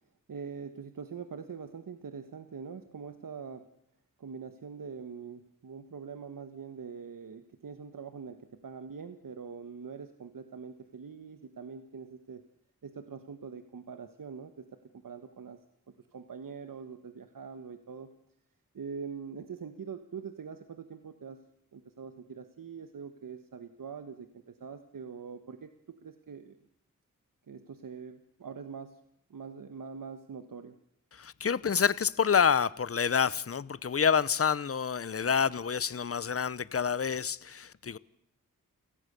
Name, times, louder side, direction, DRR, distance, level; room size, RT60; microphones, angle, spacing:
voice 1, 0.3-3.6 4.2-12.4 12.8-15.6 16.1-18.1 18.7-21.4 21.7-24.3 24.6-26.6 27.5-29.0 29.3-30.7, right 6 dB, 90° right, 1.5 m, -43 dB
voice 2, 31.1-38.0, left 7 dB, 45° left, 0.8 m, -28 dB
29.5 x 18.0 x 6.8 m
wide cardioid pair, 65°, 32 cm